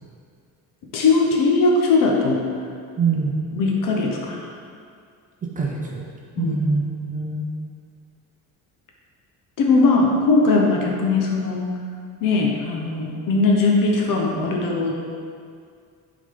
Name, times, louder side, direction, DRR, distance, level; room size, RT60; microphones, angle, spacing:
voice 1, 0.9-2.4 3.5-4.5 6.4-6.6 9.6-11.7 12.2-14.9, left 3 dB, 60° left, 0 dB, 1.1 m, -19 dB
voice 2, 3.0-3.5 5.6-6.0 6.4-7.5, right 4 dB, 20° right, -2 dB, 0.6 m, -24 dB
8.0 x 4.0 x 3.8 m, 2.2 s
cardioid pair, 165°, 36 cm